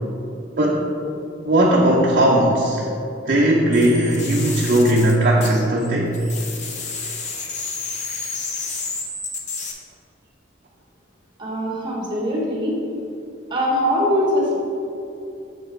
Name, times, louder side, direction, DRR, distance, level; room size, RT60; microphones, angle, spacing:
voice 1, 0.6-0.9 1.4-2.9 3.3-6.1, right 1 dB, 45° right, -3 dB, 0.7 m, -17 dB
sound 1, 3.7-5.9 6.1-9.7, left 4 dB, 40° left, 0.8 m, -31 dB
voice 2, 11.4-12.8 13.5-14.6, equal, 25° right, -3 dB, 1.3 m, -22 dB
7.3 x 4.7 x 4.5 m, 2.7 s
head